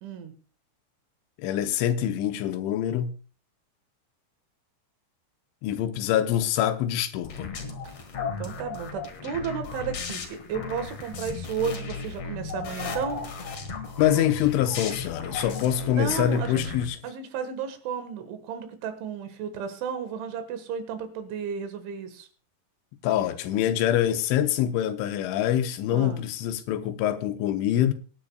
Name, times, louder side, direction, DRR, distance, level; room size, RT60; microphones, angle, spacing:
voice 1, 0.0-0.3 8.4-13.2 16.0-16.6 17.0-22.3 25.9-26.2, right 7 dB, 80° right, 3.9 m, -33 dB
voice 2, 1.4-3.2 5.6-7.5 14.0-17.0 23.0-27.9, left 11 dB, 85° left, 3.2 m, -25 dB
sound 1, 7.2-16.9, left 5 dB, 60° left, 1.7 m, -35 dB
23.0 x 10.5 x 2.3 m
omnidirectional pair, 5.5 m